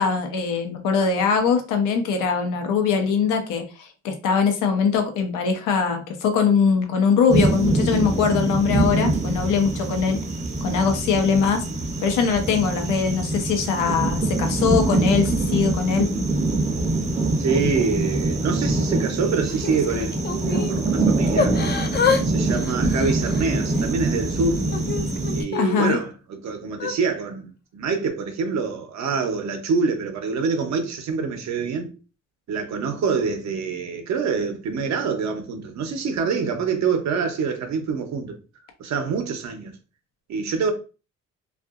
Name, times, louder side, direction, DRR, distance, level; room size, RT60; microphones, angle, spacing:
voice 1, 0.0-10.2 10.6-11.6 12.0-16.1 25.5-26.0, left 6 dB, 90° left, 0.7 m, -22 dB
sound 1, 7.3-25.4, right 2 dB, 25° right, 0.7 m, -24 dB
voice 2, 17.4-20.2 20.4-21.5 22.3-24.7 25.3-31.9 32.5-38.4 38.8-39.8 40.3-40.7, right 5 dB, 65° right, 0.8 m, -26 dB
Yell / Crying sobbing, 19.5-20.7 21.3-22.2 22.5-23.9 24.4-26.0 26.7-26.9, left 5 dB, 35° left, 0.4 m, -27 dB
2.6 x 2.5 x 2.4 m
cardioid pair, 90°, 30 cm